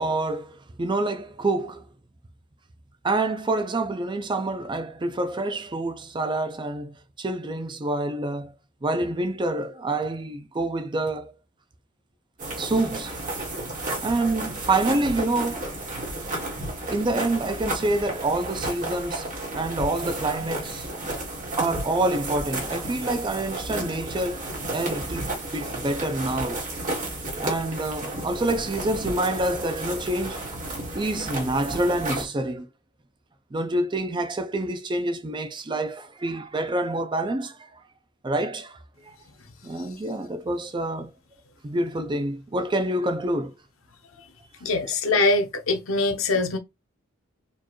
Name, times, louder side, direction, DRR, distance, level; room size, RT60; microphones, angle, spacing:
voice 1, 0.0-1.9 3.0-8.5 8.8-11.3 12.6-13.2 14.0-15.7 16.9-19.3 19.5-20.9 21.6-26.6 27.4-30.6 30.9-32.7 33.5-37.8 38.2-38.8 39.0-39.1 39.6-41.1 41.6-43.5 44.9-45.0, right 2 dB, 25° right, 0.4 m, -27 dB
sound 1, 12.4-32.2, right 1 dB, 40° right, 1.6 m, -32 dB
voice 2, 44.6-46.6, left 2 dB, 80° left, 0.8 m, -23 dB
4.3 x 2.5 x 3.0 m
head